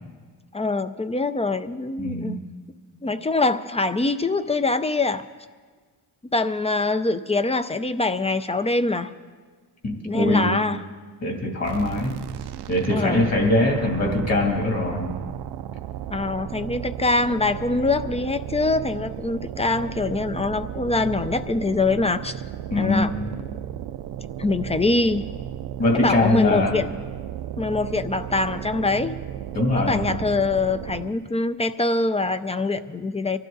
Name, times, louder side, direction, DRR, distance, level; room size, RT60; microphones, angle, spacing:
voice 1, 0.5-2.4 3.0-5.2 6.3-9.1 10.0-10.8 12.9-13.3 16.1-22.3 22.7-23.1 24.4-25.3 25.9-26.9 27.6-29.2 29.7-33.4, left 3 dB, 15° left, 12 dB, 0.4 m, -24 dB
voice 2, 2.0-2.3 9.8-10.6 11.2-12.2 12.7-15.1 22.7-23.1 25.8-26.8 29.5-30.1, left 2 dB, 40° left, 1 dB, 2.8 m, -22 dB
sound 1, 11.6-31.3, right 11 dB, 80° right, 0.6 m, -34 dB
24.0 x 12.5 x 4.0 m, 1.5 s
cardioid pair, 125°, 40 cm